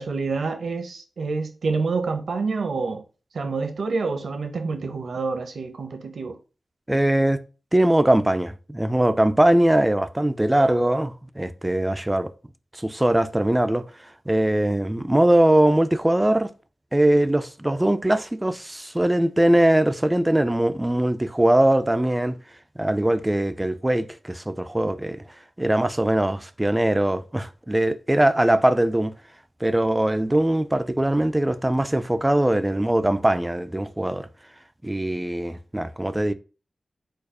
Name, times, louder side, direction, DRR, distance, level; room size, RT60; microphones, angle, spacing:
voice 1, 0.0-3.0 3.3-6.4, right 4 dB, 70° right, 0.7 m, -27 dB
voice 2, 6.9-7.4 7.7-12.3 12.7-13.9 14.3-16.5 16.9-22.4 22.8-25.2 25.6-29.1 29.6-34.3 34.8-36.3, right 1 dB, 10° right, 0.3 m, -21 dB
4.6 x 2.3 x 4.8 m
wide cardioid pair, 155°, 0 cm